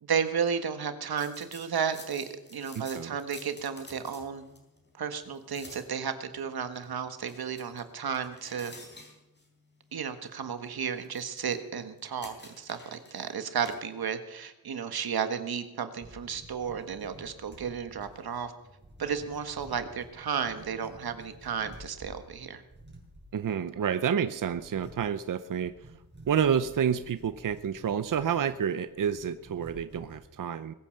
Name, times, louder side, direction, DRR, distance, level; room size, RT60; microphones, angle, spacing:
voice 1, 0.0-4.4 5.0-8.7 9.9-18.5 19.0-22.6, right 7 dB, 90° right, 9 dB, 1.6 m, -33 dB
sound 1, 1.1-14.0, left 2 dB, 30° left, 3.9 m, -53 dB
voice 2, 2.7-3.1 23.3-25.7 26.3-30.7, right 8 dB, 60° right, 12 dB, 0.7 m, -29 dB
sound 2, 15.9-30.2, right 1 dB, 30° right, 5.2 m, -52 dB
21.5 x 9.1 x 6.6 m, 0.96 s
wide cardioid pair, 130°, 36 cm